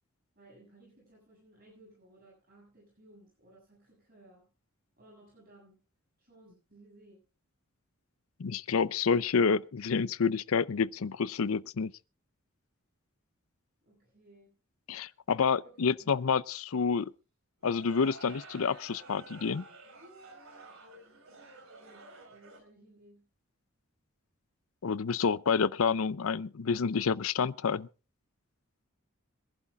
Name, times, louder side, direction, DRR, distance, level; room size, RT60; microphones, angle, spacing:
voice 1, 0.3-4.5 5.0-5.8 6.2-7.2 13.8-14.5 15.6-16.2 21.8-23.3, right 1 dB, 45° right, 7.9 m, -59 dB
voice 2, 8.4-11.9 14.9-17.1 17.6-19.6 24.8-27.9, left 5 dB, 85° left, 0.6 m, -28 dB
sound 1, 17.6-22.6, right 3 dB, 80° right, 4.4 m, -51 dB
26.0 x 11.5 x 2.4 m
head